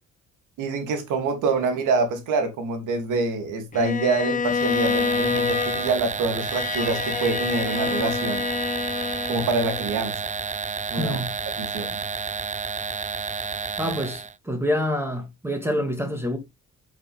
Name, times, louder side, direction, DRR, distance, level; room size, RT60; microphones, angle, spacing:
voice 1, 0.6-8.5 9.3-10.1 10.9-11.2 11.6-11.9, right 3 dB, 85° right, 3.1 m, -26 dB
Bowed string instrument, 3.7-10.0, left 5 dB, 25° left, 1.1 m, -27 dB
sound 1, 4.5-14.3, right 5 dB, 25° right, 0.6 m, -31 dB
voice 2, 11.0-11.3 13.8-16.4, equal, 10° right, 2.3 m, -27 dB
8.4 x 7.3 x 3.6 m
cardioid pair, 90°, 30 cm